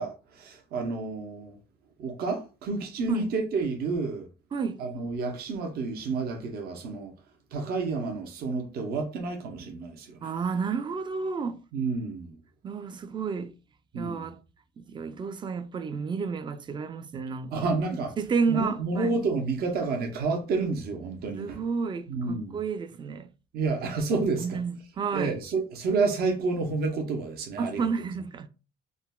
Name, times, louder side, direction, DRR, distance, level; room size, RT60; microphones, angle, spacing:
voice 1, 0.0-1.6 2.0-4.3 4.8-7.1 7.5-10.2 11.7-12.4 13.9-14.3 17.5-18.1 18.5-21.6 22.1-22.6 23.5-24.6 25.1-27.9, right 4 dB, 65° right, 0.7 m, -30 dB
voice 2, 4.5-4.8 10.2-11.6 12.6-13.6 13.9-14.4 14.8-17.7 18.2-19.2 21.3-23.3 24.4-25.4 27.6-28.5, right 5 dB, 30° right, 0.3 m, -31 dB
3.8 x 2.1 x 2.2 m
cardioid pair, 110°, 17 cm